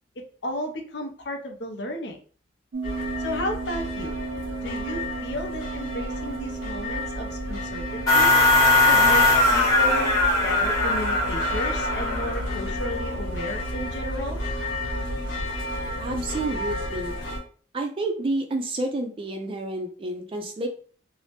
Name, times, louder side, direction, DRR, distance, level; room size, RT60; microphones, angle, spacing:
voice 1, 0.2-2.2 3.2-4.2 4.6-8.3 8.9-14.4, left 1 dB, 65° left, 3 dB, 0.6 m, -33 dB
sound 1, 2.7-16.5, right 4 dB, 75° right, 0.5 m, -38 dB
sound 2, 2.8-17.4, left 1 dB, 85° left, 1.2 m, -32 dB
sound 3, 8.1-12.6, left 2 dB, 20° left, 0.9 m, -20 dB
voice 2, 16.0-17.1 17.7-20.7, right 2 dB, 30° right, 4 dB, 0.4 m, -29 dB
2.7 x 2.0 x 3.2 m, 0.43 s
head